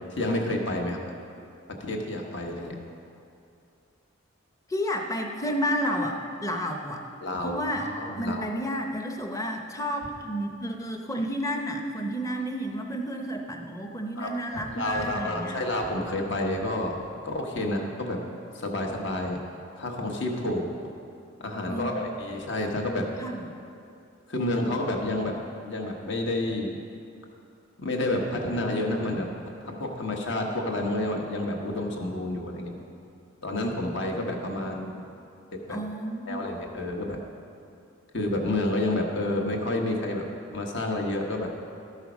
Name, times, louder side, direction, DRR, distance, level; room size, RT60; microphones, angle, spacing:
voice 1, 0.1-1.0 1.8-2.7 7.2-8.5 14.2-18.2 18.5-19.4 19.8-20.7 21.4-23.1 24.3-25.4 25.7-26.8 27.8-29.3 29.6-32.8 33.4-35.0 35.5-35.8 36.3-37.2 38.1-40.2 40.5-41.5, left 1 dB, 60° left, 1 dB, 1.2 m, -29 dB
voice 2, 4.7-7.0 7.4-7.9 8.2-15.6 21.7-22.1 23.2-23.4 35.7-36.5, equal, 15° left, 3 dB, 0.7 m, -31 dB
13.0 x 5.6 x 6.1 m, 2.6 s
head